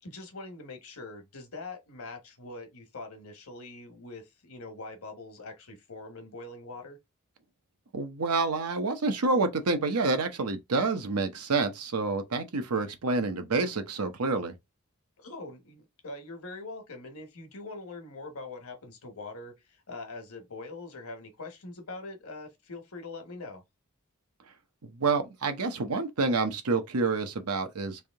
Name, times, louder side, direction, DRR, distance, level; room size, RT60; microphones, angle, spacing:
voice 1, 0.0-7.0 15.2-23.6, left 3 dB, 70° left, 1.2 m, -43 dB
voice 2, 7.9-14.5 25.0-28.0, right 3 dB, 85° right, 0.8 m, -28 dB
3.4 x 2.7 x 3.4 m
head